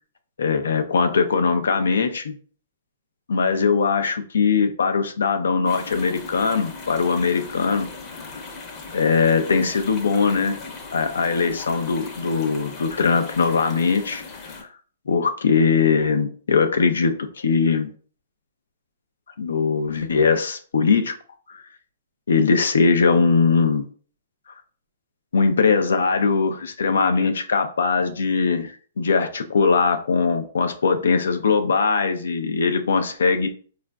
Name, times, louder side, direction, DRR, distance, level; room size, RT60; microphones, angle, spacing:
voice 1, 0.4-2.3 3.3-7.9 8.9-10.6 10.9-14.2 15.1-17.9 19.4-21.1 21.5-21.6 22.3-23.9 25.3-33.5, left 5 dB, 85° left, 7 dB, 0.4 m, -21 dB
sound 1, 5.7-14.6, left 4 dB, 25° left, 0.7 m, -38 dB
3.9 x 2.4 x 2.2 m, 0.43 s
hypercardioid pair, 145°, 0 cm